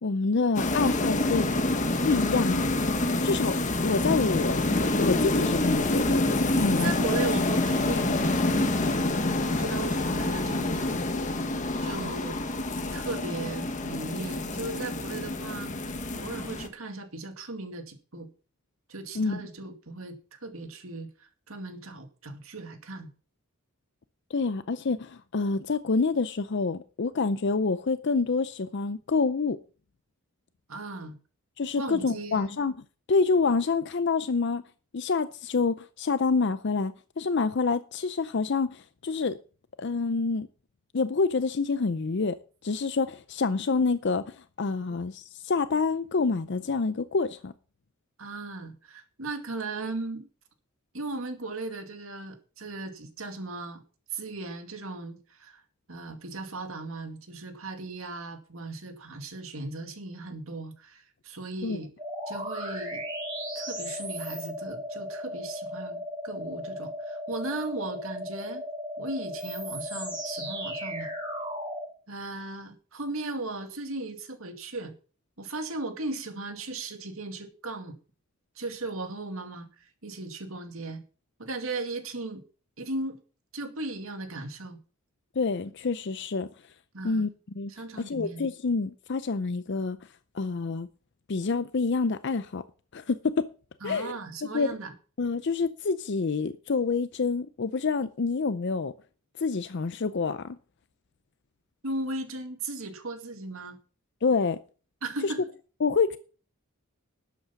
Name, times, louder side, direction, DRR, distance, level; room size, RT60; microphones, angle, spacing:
voice 1, 0.0-1.5 2.0-2.7 3.2-4.6 5.0-7.0 19.2-19.4 24.3-29.6 31.6-32.7 33.1-34.6 34.9-39.4 39.8-40.5 40.9-42.4 42.6-47.5 61.6-61.8 85.4-86.5 87.0-87.3 87.6-90.0 90.3-90.9 91.3-92.6 92.9-93.5 93.8-94.2 94.5-94.7 95.2-98.9 99.4-100.6 104.2-104.6 105.2-105.3 105.8-106.2, left 4 dB, 55° left, 0.5 m, -27 dB
sound 1, 0.6-16.7, left 2 dB, 35° left, 1.3 m, -27 dB
voice 2, 6.8-9.0 9.4-11.0 11.3-11.4 11.8-12.4 12.9-15.8 16.1-18.3 18.9-23.1 30.7-31.2 31.8-32.4 48.2-50.3 50.9-53.8 54.1-55.6 55.9-61.9 62.3-63.0 63.6-68.6 69.0-71.1 72.1-74.9 75.4-78.0 78.6-81.0 81.4-82.4 82.8-83.2 83.5-84.8 86.9-87.3 87.7-88.4 93.8-94.9 101.8-103.8 105.0-105.4, right 2 dB, 70° right, 2.3 m, -37 dB
sound 2, 62.0-71.9, equal, 20° right, 7.8 m, -36 dB
12.5 x 8.3 x 5.9 m
head